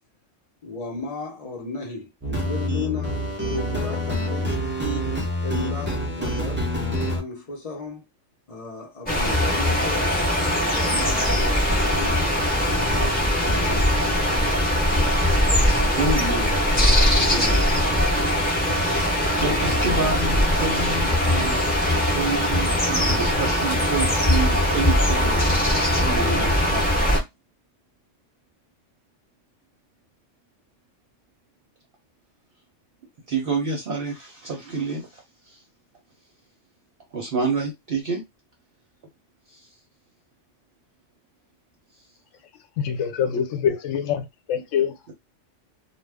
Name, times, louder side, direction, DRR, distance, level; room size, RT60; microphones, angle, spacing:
voice 1, 0.6-4.5 5.4-6.7 7.1-8.0 8.5-10.1 10.6-14.6 15.4-16.0 18.6-18.9, left 3 dB, 35° left, 0.8 m, -35 dB
sound 1, 2.2-7.2, equal, 15° right, 0.4 m, -26 dB
sound 2, 9.1-27.2, left 1 dB, 10° left, 1.0 m, -21 dB
voice 2, 15.7-17.9 18.7-21.7 22.0-25.5 25.9-27.1 33.3-35.6 37.1-38.2 39.5-39.7, right 4 dB, 55° right, 0.8 m, -29 dB
voice 3, 42.8-44.2 44.5-44.9, left 8 dB, 85° left, 0.9 m, -24 dB
2.4 x 2.2 x 3.3 m
omnidirectional pair, 1.3 m